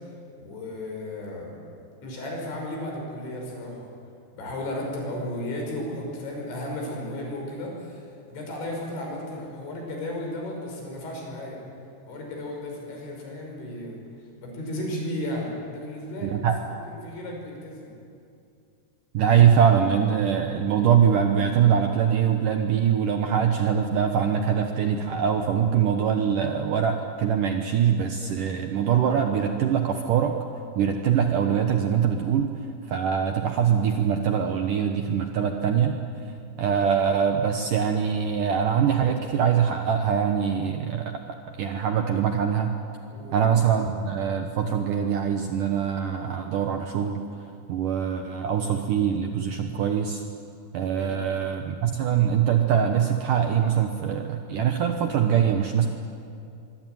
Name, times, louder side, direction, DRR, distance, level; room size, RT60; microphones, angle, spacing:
voice 1, 0.4-1.6 2.0-3.9 4.3-11.6 12.1-14.0 14.4-17.9 43.1-43.4 51.0-51.2, left 1 dB, 85° left, 0 dB, 8.0 m, -34 dB
voice 2, 16.2-16.6 19.1-30.4 30.8-32.5 32.9-35.9 36.2-42.7 43.3-47.2 47.7-50.2 50.7-55.9, right 8 dB, 70° right, 4 dB, 2.1 m, -23 dB
24.0 x 24.0 x 9.3 m, 2.5 s
omnidirectional pair, 5.1 m